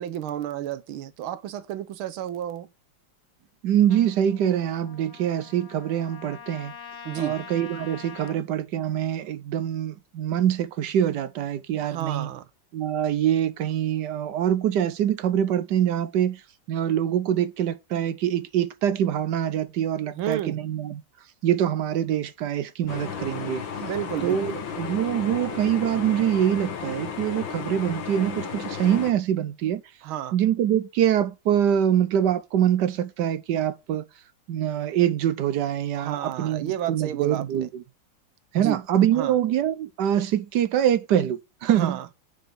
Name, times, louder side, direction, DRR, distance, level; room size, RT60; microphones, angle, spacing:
voice 1, 0.0-2.7 7.1-7.4 11.8-12.5 20.1-20.6 23.8-24.6 30.0-30.4 35.9-37.7 38.5-38.8 39.1-39.4 41.8-42.1, right 11 dB, 90° right, 1.7 m, -32 dB
voice 2, 3.6-6.7 7.2-12.3 12.7-16.4 16.7-21.0 21.4-23.6 24.2-29.8 30.3-34.0 34.5-37.8 38.5-42.0, right 10 dB, 65° right, 1.2 m, -24 dB
Trumpet, 3.9-8.4, left 7 dB, 40° left, 1.2 m, -44 dB
sound 1, 22.9-29.1, left 6 dB, 70° left, 2.2 m, -34 dB
9.1 x 6.0 x 5.3 m
omnidirectional pair, 2.2 m